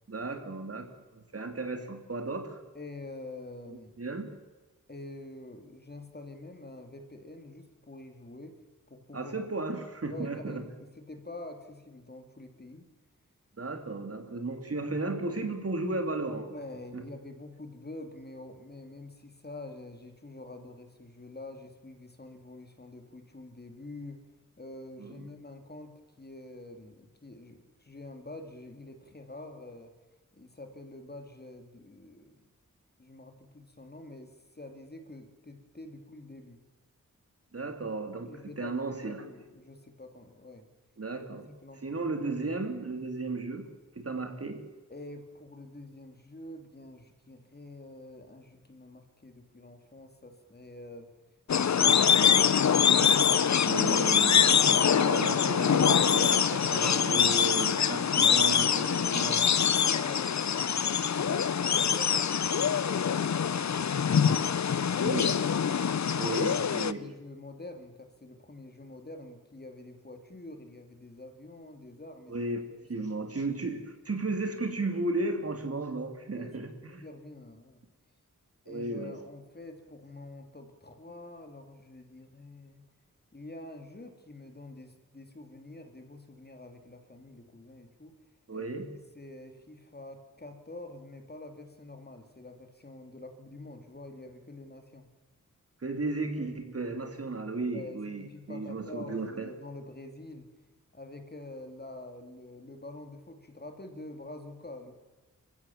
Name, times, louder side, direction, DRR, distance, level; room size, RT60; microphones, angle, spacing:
voice 1, 0.1-2.6 4.0-4.3 9.1-10.6 13.6-16.5 16.9-17.0 25.0-25.3 37.5-38.3 38.6-39.2 41.0-41.5 41.8-43.7 43.9-44.6 53.6-59.4 65.0-65.3 66.1-67.1 72.3-72.6 72.9-77.0 78.7-79.2 88.5-88.9 95.8-99.5, right 2 dB, 45° right, 6 dB, 2.8 m, -34 dB
voice 2, 2.7-3.9 4.9-8.5 8.9-9.3 10.1-12.9 16.5-24.2 24.6-25.9 26.2-29.9 30.3-32.4 33.0-36.6 38.3-40.7 41.6-42.3 44.9-51.1 56.6-57.0 57.9-59.5 59.9-62.1 62.5-65.2 66.2-72.5 73.0-73.1 76.4-76.5 76.8-77.8 78.6-82.9 83.3-88.1 88.5-88.9 89.1-95.1 97.7-100.5 100.9-104.9, left 2 dB, 30° left, 6 dB, 2.7 m, -46 dB
sound 1, 51.5-66.9, left 7 dB, 60° left, 0.7 m, -24 dB
27.0 x 15.5 x 7.2 m, 1.2 s
wide cardioid pair, 105°, 32 cm